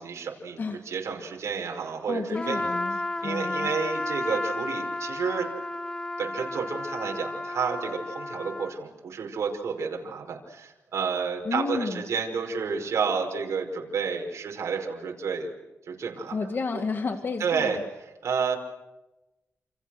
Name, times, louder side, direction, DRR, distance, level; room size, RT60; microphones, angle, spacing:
voice 1, 0.0-0.6 0.9-2.6 3.2-5.5 6.2-15.5 15.9-16.4 17.4-17.8 18.2-18.6, right 6 dB, 85° right, 1 dB, 5.5 m, -30 dB
voice 2, 2.1-3.7 11.4-12.0 16.3-17.8, left 4 dB, 45° left, 6 dB, 2.1 m, -31 dB
Trumpet, 2.3-8.8, left 2 dB, 15° left, 1.0 m, -32 dB
29.0 x 28.5 x 6.5 m, 1.0 s
wide cardioid pair, 130°, 5 cm